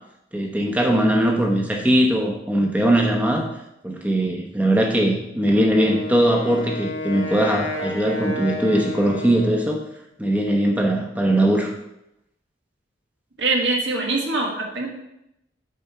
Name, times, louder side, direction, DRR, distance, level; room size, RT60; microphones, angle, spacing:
voice 1, 0.3-3.5 3.8-9.8 10.2-11.7, right 1 dB, 10° right, 1 dB, 0.9 m, -20 dB
Wind instrument woodwind instrument, 5.6-9.9, left 2 dB, 80° left, 1.3 m, -31 dB
voice 2, 13.4-14.9, right 3 dB, 75° right, 0 dB, 1.5 m, -23 dB
7.7 x 4.3 x 4.5 m, 0.84 s
head